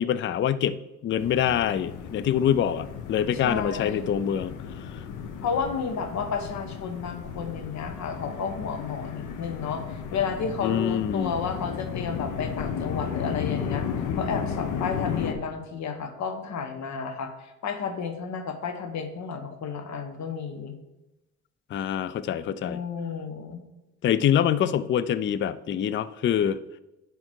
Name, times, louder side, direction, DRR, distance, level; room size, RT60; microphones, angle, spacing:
voice 1, 0.0-4.5 10.6-11.4 21.7-22.8 24.0-26.6, left 9 dB, 40° left, 16 dB, 0.4 m, -25 dB
sound 1, 1.2-15.3, left 7 dB, 85° left, 0.9 m, -34 dB
voice 2, 3.4-4.2 5.4-13.8 14.2-20.7 22.6-23.6, left 5 dB, 65° left, 6 dB, 1.2 m, -32 dB
10.5 x 3.8 x 4.5 m, 0.99 s
cardioid pair, 90°, 30 cm